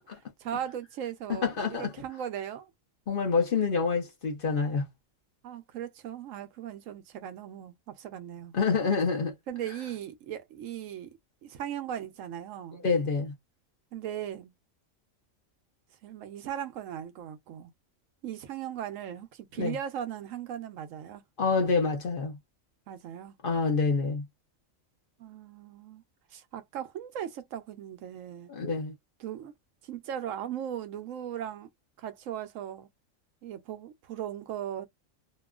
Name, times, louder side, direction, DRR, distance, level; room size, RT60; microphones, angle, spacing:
voice 1, 0.0-2.7 5.4-8.5 9.5-12.8 13.9-14.5 16.0-17.7 18.2-21.2 22.9-23.3 25.2-26.0 26.3-28.5 29.2-29.5 29.8-31.7 32.0-32.9 33.4-34.9, right 10 dB, 80° right, 1.0 m, -38 dB
voice 2, 1.3-1.9 3.1-4.9 8.5-9.3 12.8-13.3 19.6-19.7 21.4-22.4 23.4-24.2 28.5-28.9, left 4 dB, 45° left, 0.9 m, -27 dB
2.9 x 2.3 x 2.3 m
omnidirectional pair, 1.4 m